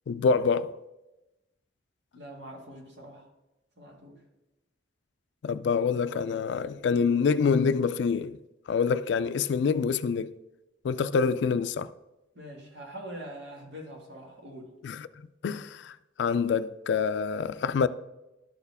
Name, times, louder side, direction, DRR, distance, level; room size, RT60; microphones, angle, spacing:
voice 1, 0.1-0.8 5.4-8.4 8.7-10.3 10.8-11.9 14.8-15.1 15.4-15.9 16.2-17.9, left 5 dB, 70° left, 0.3 m, -26 dB
voice 2, 2.1-3.2 3.8-4.2 12.4-14.7, right 1 dB, 70° right, 1.8 m, -43 dB
12.0 x 4.4 x 3.5 m
head